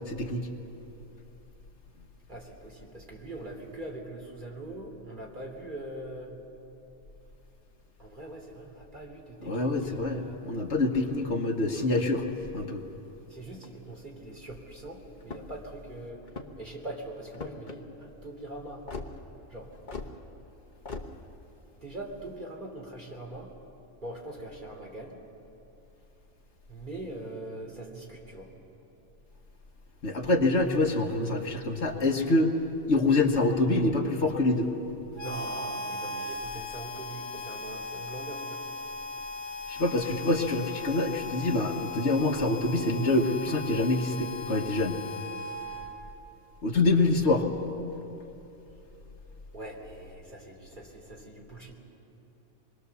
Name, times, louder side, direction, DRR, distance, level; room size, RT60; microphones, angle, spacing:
voice 1, 0.1-0.5 9.4-12.2 12.5-12.8 30.0-32.5 32.9-34.7 39.7-45.0 46.6-47.4, left 2 dB, 65° left, 3 dB, 1.6 m, -26 dB
voice 2, 2.3-6.3 8.0-10.4 13.3-16.2 16.6-18.8 19.5-19.7 21.8-23.5 24.0-25.2 26.7-28.5 35.2-38.6 49.5-51.7, right 1 dB, 40° right, 0 dB, 3.1 m, -42 dB
sound 1, 15.2-15.6 16.2-16.7 17.3-17.8 18.9-19.1 19.9-20.1 20.9-21.1, left 4 dB, 40° left, 1.3 m, -39 dB
Harmonica, 35.1-46.2, left 3 dB, 20° left, 1.7 m, -38 dB
26.0 x 21.0 x 7.0 m, 3.0 s
omnidirectional pair, 1.3 m